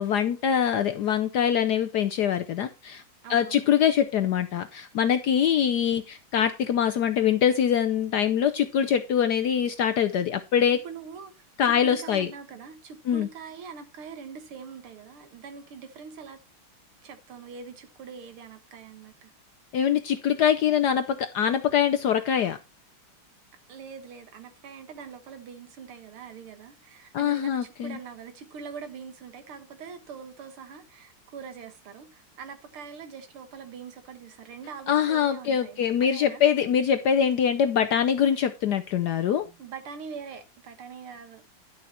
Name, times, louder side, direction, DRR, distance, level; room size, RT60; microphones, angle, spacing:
voice 1, 0.0-3.0 3.3-10.8 11.6-12.3 13.1-13.3 19.7-22.6 27.1-28.0 34.9-39.5, left 8 dB, 70° left, 1.0 m, -24 dB
voice 2, 3.2-3.7 10.7-16.4 17.0-19.3 23.7-36.4 39.5-41.4, right 6 dB, 80° right, 2.3 m, -43 dB
11.0 x 6.4 x 4.3 m
omnidirectional pair, 2.3 m